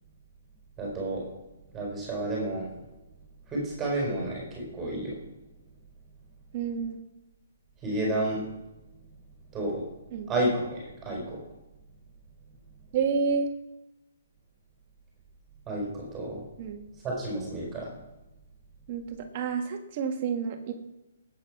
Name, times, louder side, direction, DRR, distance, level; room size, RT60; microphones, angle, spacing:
voice 1, 0.8-1.2 1.7-2.7 3.5-5.2 7.8-8.4 9.5-9.9 10.3-11.4 15.7-16.4 17.0-17.9, right 1 dB, 10° right, -3 dB, 4.5 m, -30 dB
voice 2, 6.5-7.0 10.1-10.3 12.9-13.5 16.6-16.9 18.9-20.7, right 5 dB, 25° right, 5 dB, 1.8 m, -29 dB
19.5 x 9.1 x 6.1 m, 1.0 s
hypercardioid pair, 175°, 0 cm